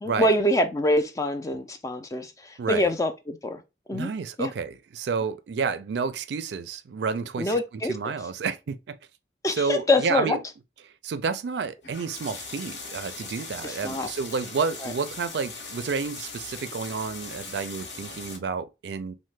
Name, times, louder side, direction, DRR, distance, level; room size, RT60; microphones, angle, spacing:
voice 1, 0.0-3.6 3.9-4.1 4.4-4.5 7.4-7.9 9.4-10.4 13.6-14.1 14.8-14.9, left 1 dB, 20° left, 0.3 m, -25 dB
voice 2, 2.6-2.9 3.9-7.6 7.9-8.9 9.5-10.4 11.0-19.1, right 5 dB, 75° right, 0.4 m, -30 dB
sound 1, 11.8-18.4, left 4 dB, 75° left, 0.9 m, -40 dB
3.2 x 2.1 x 3.1 m
head